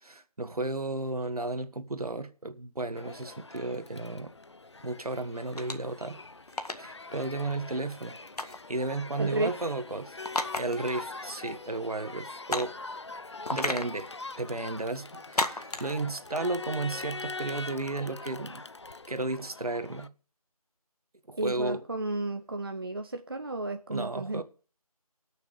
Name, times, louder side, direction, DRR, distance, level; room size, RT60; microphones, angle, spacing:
voice 1, 0.0-4.3 4.8-6.2 6.7-8.2 8.4-10.2 10.6-12.8 13.5-14.1 14.4-18.6 19.1-20.1 21.3-21.8 23.9-24.4, right 2 dB, 70° right, 1.6 m, -33 dB
Crowd, 3.0-20.1, left 3 dB, 45° left, 0.6 m, -43 dB
sound 1, 5.6-5.9 6.5-6.8 8.4-8.7 10.2-10.9 11.2-11.3 12.5-12.8 13.5-13.9 15.4-15.9, left 2 dB, 75° left, 1.8 m, -31 dB
voice 2, 9.2-9.5 21.4-24.4, right 2 dB, 35° right, 0.7 m, -32 dB
18.5 x 6.6 x 5.0 m
figure-of-eight pair, 170°, 20 cm